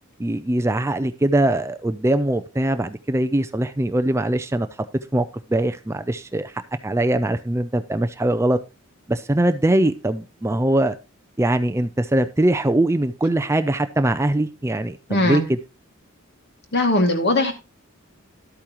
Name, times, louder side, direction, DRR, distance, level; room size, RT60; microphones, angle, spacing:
voice 1, 0.2-4.7 5.1-8.6 9.1-11.0 11.4-15.6, right 1 dB, 15° right, 0.4 m, -22 dB
voice 2, 15.1-15.4 16.7-17.5, left 2 dB, 50° left, 2.2 m, -19 dB
12.5 x 8.5 x 3.0 m
head